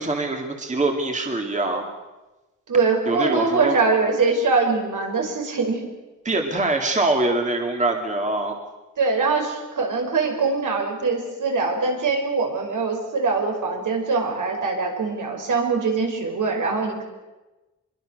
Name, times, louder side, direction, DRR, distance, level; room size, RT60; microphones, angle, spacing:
voice 1, 0.0-1.9 3.1-3.8 6.2-8.6, right 2 dB, 25° right, 3 dB, 2.4 m, -23 dB
voice 2, 2.7-5.9 9.0-17.0, right 4 dB, 70° right, 2 dB, 5.6 m, -23 dB
25.5 x 23.0 x 6.6 m, 1.1 s
wide cardioid pair, 155°, 32 cm